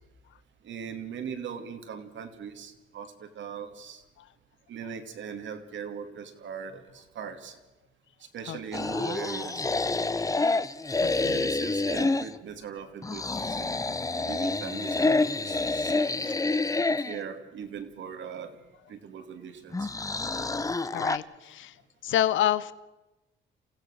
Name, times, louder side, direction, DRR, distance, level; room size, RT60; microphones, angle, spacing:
voice 1, 0.6-4.0 4.7-7.6 8.3-9.6 11.0-13.7 14.1-16.0 17.0-18.5 18.9-19.9, right 7 dB, 70° right, 7 dB, 2.6 m, -40 dB
sound 1, 8.7-12.4 13.0-17.2 19.7-21.2, left 3 dB, 15° left, 0.8 m, -28 dB
voice 2, 11.0-11.5 20.8-21.8 22.0-22.7, left 12 dB, 75° left, 16 dB, 0.9 m, -28 dB
28.0 x 15.5 x 6.5 m, 1.0 s
cardioid pair, 90°, 20 cm